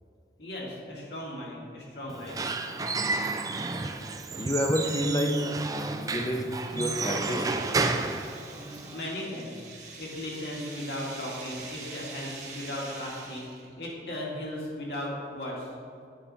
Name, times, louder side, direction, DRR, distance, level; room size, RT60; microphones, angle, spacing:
voice 1, 0.4-2.5 8.5-9.6 10.0-15.7, left 1 dB, 70° left, -3 dB, 1.8 m, -37 dB
Squeak / Wood, 2.1-9.0, right 3 dB, 20° right, 0.3 m, -31 dB
voice 2, 4.4-5.4 6.0-7.5, equal, 20° left, 4 dB, 0.6 m, -29 dB
sound 1, 6.4-13.7, right 4 dB, 40° right, 1.3 m, -45 dB
9.0 x 4.3 x 5.3 m, 2.3 s
head